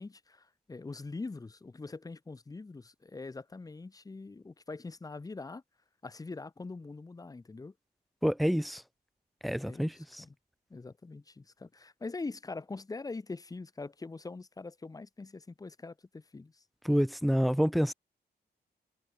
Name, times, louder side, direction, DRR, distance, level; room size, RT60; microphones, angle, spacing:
voice 1, 0.0-5.6 6.0-7.7 9.6-10.3 10.7-16.6, left 3 dB, 20° left, 3.4 m, -43 dB
voice 2, 8.2-8.8 9.4-10.2 16.8-17.9, equal, ahead, 0.5 m, -28 dB
wide cardioid pair, 160°, 18 cm